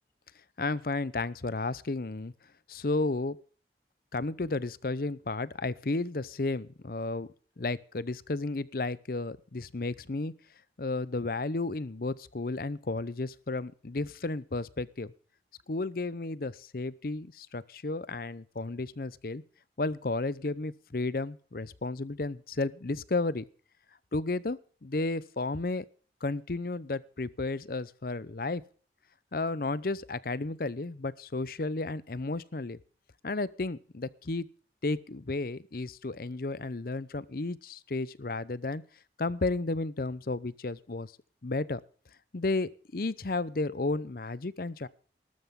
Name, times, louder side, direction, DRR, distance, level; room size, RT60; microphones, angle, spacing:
voice 1, 0.6-2.3 2.7-3.4 4.1-7.3 7.6-10.3 10.8-15.1 15.7-19.4 19.8-23.5 24.1-25.8 26.2-28.6 29.3-32.8 33.2-34.5 34.8-38.8 39.2-41.1 41.4-41.8 42.3-44.9, left 3 dB, 55° left, 18 dB, 0.7 m, -33 dB
19.0 x 13.0 x 3.7 m, 0.40 s
head